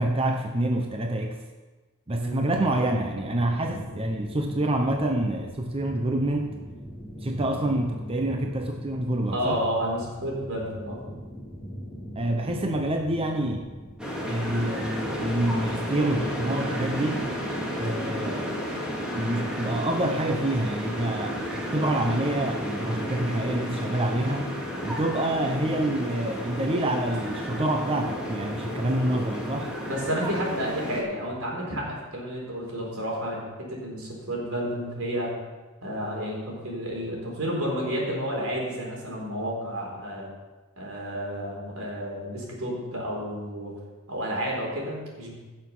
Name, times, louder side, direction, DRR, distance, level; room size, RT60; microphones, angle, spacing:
voice 1, 0.0-1.4 2.1-6.5 7.2-9.6 12.1-13.7 14.3-17.3 17.8-18.6 19.1-24.5 24.8-29.8, right 1 dB, 25° right, 3 dB, 0.8 m, -27 dB
sound 1, 2.5-16.8, equal, 30° left, 3.3 m, -41 dB
voice 2, 9.3-11.0 29.8-35.3 35.8-40.3 40.8-43.7 44.1-45.3, equal, 80° right, -2 dB, 4.0 m, -31 dB
sound 2, 14.0-31.0, equal, 5° right, 2.1 m, -32 dB
16.0 x 6.6 x 5.5 m, 1.2 s
head